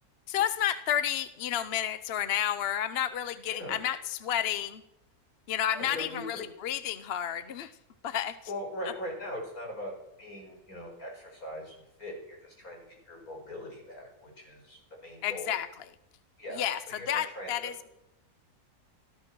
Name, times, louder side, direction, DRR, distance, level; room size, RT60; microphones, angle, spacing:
voice 1, 0.3-4.8 5.5-7.7 8.0-8.4 15.2-15.7 16.6-16.8 17.1-17.7, left 10 dB, 55° left, 13 dB, 0.8 m, -31 dB
voice 2, 5.7-6.5 8.5-9.9 10.2-15.6 16.4-17.7, left 1 dB, 70° left, 1 dB, 5.9 m, -41 dB
16.5 x 14.0 x 6.1 m, 0.87 s
omnidirectional pair, 1.6 m